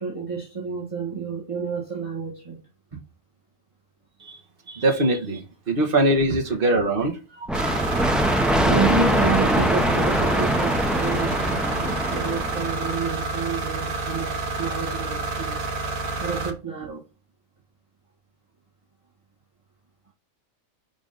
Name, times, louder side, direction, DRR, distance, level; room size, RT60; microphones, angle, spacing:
voice 1, 0.0-2.6 6.1-6.6 7.0-7.1 8.6-15.7 16.2-17.0, right 5 dB, 25° right, 1.6 m, -29 dB
voice 2, 4.7-7.1, right 1 dB, 45° right, 1.4 m, -22 dB
sound 1, 7.5-13.1, equal, ahead, 0.3 m, -23 dB
sound 2, 7.5-16.5, right 3 dB, 80° right, 1.5 m, -29 dB
5.6 x 4.9 x 3.8 m
omnidirectional pair, 1.4 m